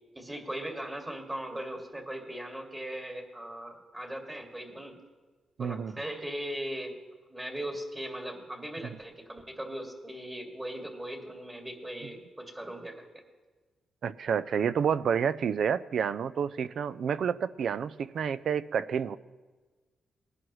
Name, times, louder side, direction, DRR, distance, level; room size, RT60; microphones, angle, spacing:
voice 1, 0.1-5.0 5.6-7.0 7.3-13.1, right 1 dB, 20° right, 2 dB, 2.2 m, -39 dB
voice 2, 5.6-5.9 14.0-19.2, right 7 dB, 65° right, 15 dB, 0.4 m, -29 dB
19.5 x 11.0 x 3.2 m, 1.3 s
cardioid pair, 100°, 0 cm